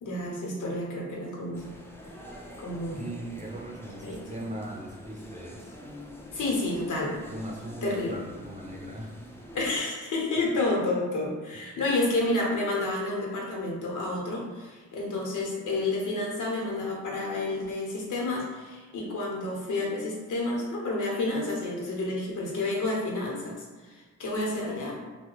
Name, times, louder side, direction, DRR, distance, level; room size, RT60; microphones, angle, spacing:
voice 1, 0.0-1.6 2.6-3.0 4.0-4.2 6.3-7.2 7.8-8.2 9.5-24.9, left 2 dB, 85° left, -2 dB, 0.9 m, -30 dB
sound 1, 1.5-9.8, left 1 dB, 10° left, 0.4 m, -46 dB
voice 2, 3.0-5.8 6.3-6.6 7.3-9.2, right 1 dB, 25° right, -1 dB, 0.7 m, -39 dB
2.8 x 2.2 x 3.8 m, 1.3 s
cardioid pair, 75°, 30 cm